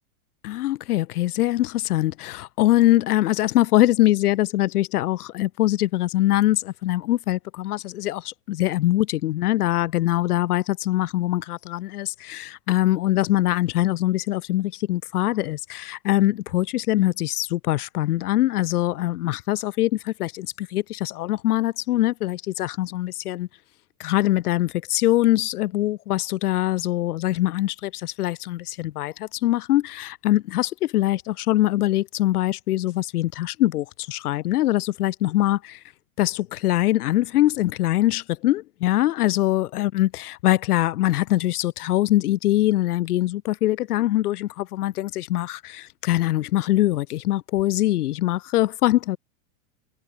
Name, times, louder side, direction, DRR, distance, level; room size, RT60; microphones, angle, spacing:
voice 1, 0.4-23.5 24.0-35.8 36.2-49.2, left 15 dB, 75° left, 5.3 m, -23 dB
supercardioid pair, 150°, 45 cm